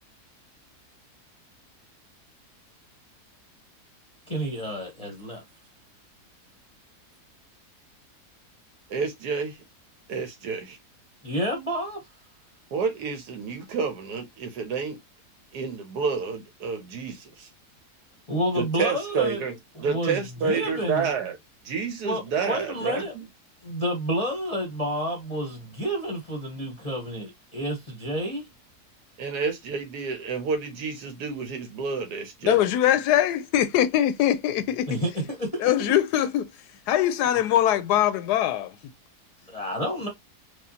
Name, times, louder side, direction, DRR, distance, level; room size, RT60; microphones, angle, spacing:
voice 1, 4.3-5.4 11.2-12.0 18.3-19.4 19.8-21.1 22.0-23.2 23.6-28.5 34.9-35.7 39.5-40.1, equal, 30° left, 0.7 m, -29 dB
voice 2, 8.9-9.6 10.1-10.8 12.7-15.0 15.5-17.5 18.6-21.4 21.6-23.2 29.2-32.6, right 5 dB, 80° right, 1.3 m, -29 dB
voice 3, 32.4-35.0 35.6-36.5 36.9-38.8, left 11 dB, 80° left, 1.1 m, -22 dB
4.8 x 2.2 x 2.7 m
omnidirectional pair, 1.7 m